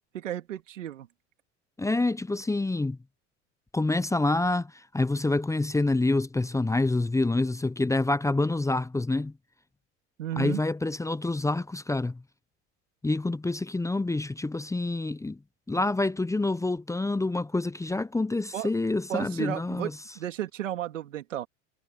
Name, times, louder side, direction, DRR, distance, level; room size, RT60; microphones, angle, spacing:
voice 1, 0.1-1.1 10.2-10.6 18.5-18.7 19.1-21.5, right 12 dB, 90° right, 3.0 m, -33 dB
voice 2, 1.8-3.0 3.7-9.3 10.4-12.2 13.0-15.4 15.7-19.9, left 2 dB, 10° left, 0.8 m, -27 dB
hypercardioid pair, 85°, 37 cm